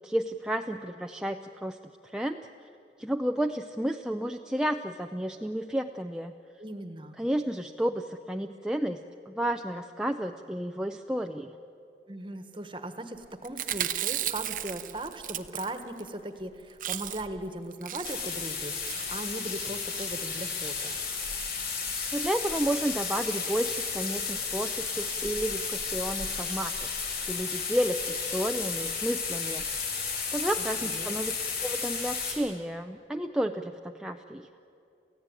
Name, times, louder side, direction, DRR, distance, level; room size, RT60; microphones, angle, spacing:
voice 1, 0.0-1.8 2.0-2.5 3.0-6.3 7.2-11.6 22.1-29.7 30.3-31.3 31.6-34.5, right 1 dB, 5° right, 4 dB, 0.5 m, -31 dB
voice 2, 6.6-7.2 12.1-21.0 30.8-31.1, right 1 dB, 30° right, 8 dB, 1.4 m, -38 dB
Chewing mastication, 13.4-16.1 16.4-16.5 16.7-17.4 17.7-18.4 18.8-19.2 19.8-20.1 20.8-21.0 21.3-21.4 21.6-21.7, right 11 dB, 50° right, 0.8 m, -35 dB
sound 1, 18.0-32.3, left 5 dB, 60° left, 5.0 m, -33 dB
28.0 x 16.0 x 9.0 m, 2.6 s
head